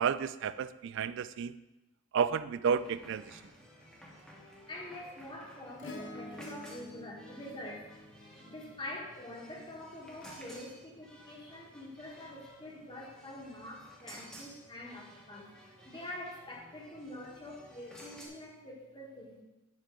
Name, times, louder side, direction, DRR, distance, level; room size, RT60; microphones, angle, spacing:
voice 1, 0.0-1.6 2.1-3.4, right 7 dB, 55° right, 15 dB, 0.3 m, -31 dB
sound 1, 2.7-18.3, equal, ahead, 1.4 m, -55 dB
voice 2, 4.7-19.4, left 1 dB, 20° left, -1 dB, 1.6 m, -46 dB
Acoustic guitar / Strum, 5.8-10.4 12.3-12.4, left 1 dB, 60° left, 0.9 m, -49 dB
10.0 x 5.6 x 3.7 m, 0.97 s
head